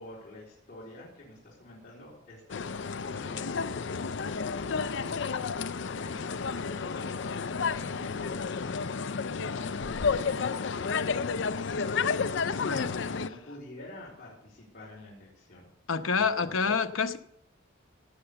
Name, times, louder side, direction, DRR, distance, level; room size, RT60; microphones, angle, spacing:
voice 1, 0.0-12.1 12.9-15.7 16.2-16.7, left 1 dB, 40° left, 4.2 m, -49 dB
sound 1, 2.5-13.3, left 5 dB, 55° left, 0.5 m, -31 dB
voice 2, 12.5-12.9 15.9-17.2, left 5 dB, 75° left, 1.0 m, -28 dB
17.5 x 8.9 x 6.9 m
head